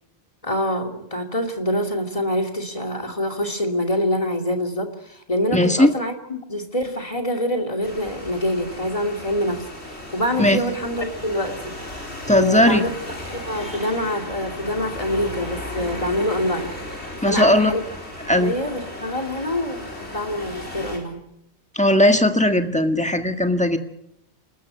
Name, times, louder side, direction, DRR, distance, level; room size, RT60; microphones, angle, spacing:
voice 1, 0.4-12.9 13.3-16.7 17.2-17.8 18.3-21.2, left 1 dB, 30° left, 4 dB, 2.8 m, -25 dB
voice 2, 5.5-5.9 10.4-10.6 12.3-12.8 17.2-17.7 18.3-18.5 21.7-23.8, left 1 dB, 5° left, 7 dB, 1.6 m, -17 dB
sound 1, 7.8-21.0, left 1 dB, 65° left, 4.9 m, -35 dB
28.0 x 13.5 x 8.1 m, 0.80 s
omnidirectional pair, 1.2 m